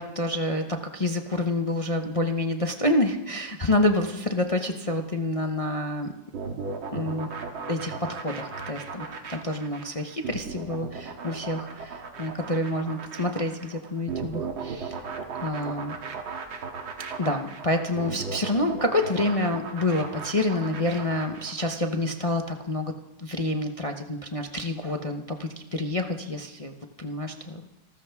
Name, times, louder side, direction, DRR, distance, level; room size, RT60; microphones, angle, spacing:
voice 1, 0.0-6.1 6.9-7.3 7.7-15.0 15.4-16.0 17.2-22.9 23.2-26.7 27.0-27.6, left 1 dB, 40° left, 4 dB, 0.4 m, -28 dB
sound 1, 6.3-21.8, right 5 dB, 90° right, 2.5 m, -36 dB
27.5 x 13.5 x 3.5 m, 0.99 s
omnidirectional pair, 2.2 m